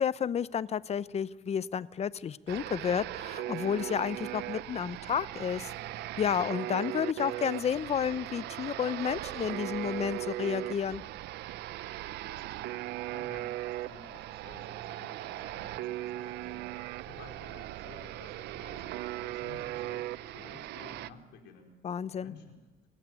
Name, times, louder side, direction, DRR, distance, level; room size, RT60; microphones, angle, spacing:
voice 1, 0.0-5.7 6.2-11.0 21.8-22.3, left 8 dB, 40° left, 17 dB, 0.8 m, -31 dB
sound 1, 2.5-21.1, right 15 dB, 80° right, 0.7 m, -38 dB
sound 2, 9.7-10.1 10.9-11.3 12.1-12.5 13.3-13.7 14.5-14.9 15.7-16.1 16.9-17.3 18.2-18.6 19.5-19.9 20.6-21.1, right 6 dB, 50° right, 4.4 m, -59 dB
voice 2, 12.2-16.7 17.1-20.1 20.3-21.7 22.2-22.6, left 5 dB, 80° left, 2 dB, 4.9 m, -53 dB
26.5 x 15.5 x 9.8 m, 1.1 s
cardioid pair, 110°, 17 cm